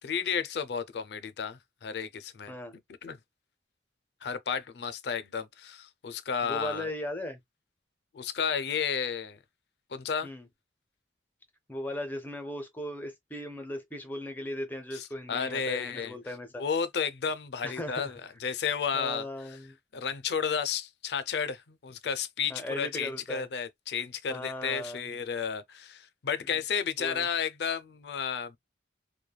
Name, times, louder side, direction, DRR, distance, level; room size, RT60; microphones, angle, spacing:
voice 1, 0.0-2.5 3.0-3.2 4.2-6.9 8.1-9.4 9.9-10.3 14.9-16.1 16.6-19.3 19.9-28.6, left 6 dB, 65° left, 0.4 m, -32 dB
voice 2, 6.4-7.4 10.2-10.5 11.7-16.6 17.6-18.1 18.9-19.8 22.5-23.5 24.3-25.0 26.5-26.6 27.0-27.3, left 1 dB, 10° left, 0.6 m, -37 dB
3.1 x 2.2 x 2.2 m
head